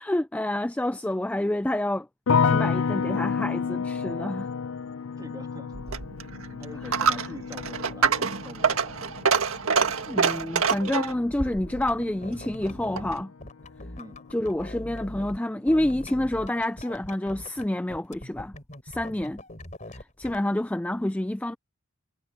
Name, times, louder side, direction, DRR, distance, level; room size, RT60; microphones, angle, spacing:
voice 1, 0.0-2.1 2.4-4.5 6.9-7.3 10.1-13.3 14.3-18.5 18.8-19.4 19.9-21.6, left 1 dB, 5° left, 0.3 m, -28 dB
sound 1, 2.3-13.3 13.6-14.3, left 6 dB, 70° left, 0.5 m, -31 dB
voice 2, 4.8-5.8 6.6-9.1 14.0-14.2, right 1 dB, 20° right, 2.6 m, -45 dB
Coin (dropping), 5.7-13.2, right 5 dB, 80° right, 1.7 m, -27 dB
sound 2, 11.7-15.4 15.7-17.6 17.9-20.4, left 1 dB, 35° left, 3.9 m, -42 dB
head